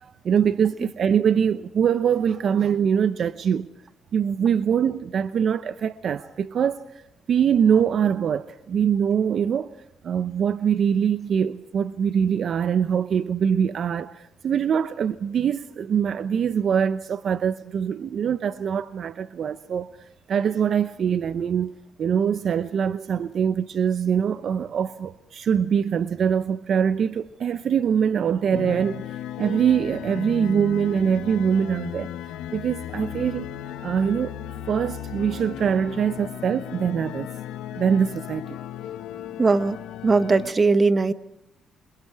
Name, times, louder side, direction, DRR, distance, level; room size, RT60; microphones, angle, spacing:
voice 1, 0.0-3.7 4.1-6.8 7.3-9.7 10.0-19.9 20.3-29.0 29.4-32.1 32.5-33.5 33.8-34.4 34.7-37.3 37.7-38.6, right 7 dB, 60° right, 0.9 m, -23 dB
sound 1, 28.5-40.5, left 11 dB, 85° left, 1.3 m, -35 dB
voice 2, 39.4-39.8 40.0-41.1, right 3 dB, 30° right, 1.4 m, -19 dB
29.0 x 27.0 x 4.8 m
cardioid pair, 90°, 0 cm